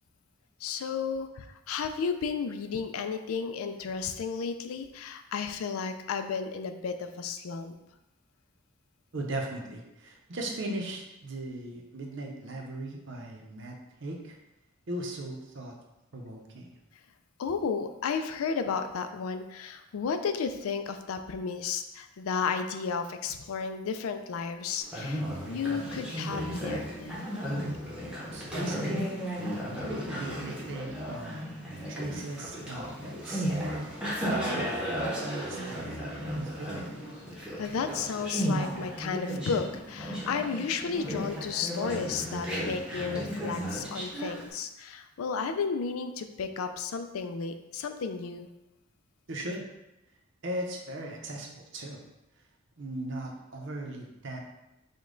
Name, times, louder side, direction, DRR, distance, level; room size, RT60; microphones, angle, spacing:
voice 1, 0.6-7.7 17.4-27.2 37.6-48.5, left 5 dB, 90° left, 8 dB, 0.4 m, -33 dB
voice 2, 9.1-14.4 14.9-15.7 16.1-16.8 28.3-29.2 29.8-31.5 31.9-35.9 36.3-36.8 49.3-49.6 50.4-52.0 52.8-54.4, right 1 dB, 60° right, 1 dB, 0.7 m, -38 dB
Conversation, 24.8-44.5, equal, 5° right, 0.8 m, -34 dB
5.1 x 2.3 x 3.8 m, 0.94 s
head